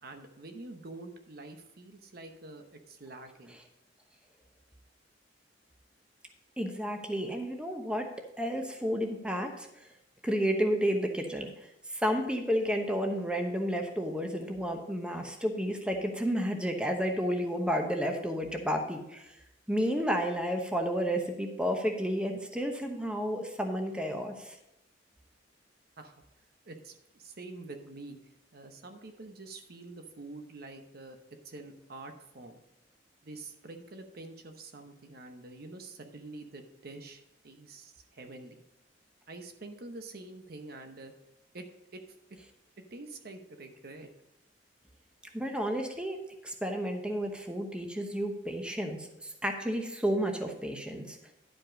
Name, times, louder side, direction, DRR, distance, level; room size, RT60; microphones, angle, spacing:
voice 1, 0.0-3.6 26.0-26.2 26.7-31.2 31.4-32.6 33.2-38.6 39.3-41.1 41.5-41.7 41.9-42.0 42.9-44.1, right 2 dB, 55° right, 6 dB, 0.9 m, -46 dB
voice 2, 6.6-8.1 8.4-9.9 10.2-19.4 19.7-24.6 45.3-51.2, equal, 5° right, 3 dB, 0.9 m, -31 dB
11.0 x 5.2 x 5.1 m, 0.87 s
head